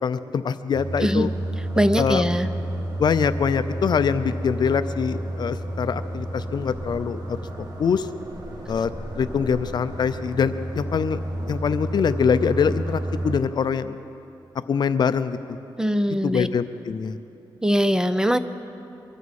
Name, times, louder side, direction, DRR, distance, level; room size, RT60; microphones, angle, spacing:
voice 1, 0.0-1.3 2.0-2.2 3.0-7.4 7.8-8.1 8.7-11.2 11.5-13.9 14.7-15.6 16.2-17.2, left 6 dB, 60° left, 12 dB, 0.5 m, -24 dB
sound 1, 0.7-13.4, right 1 dB, 55° right, 1.9 m, -31 dB
voice 2, 1.7-2.5 15.8-16.5 17.6-18.4, equal, 10° right, 11 dB, 0.6 m, -21 dB
23.5 x 14.5 x 4.2 m, 2.9 s
cardioid pair, 100°, 8 cm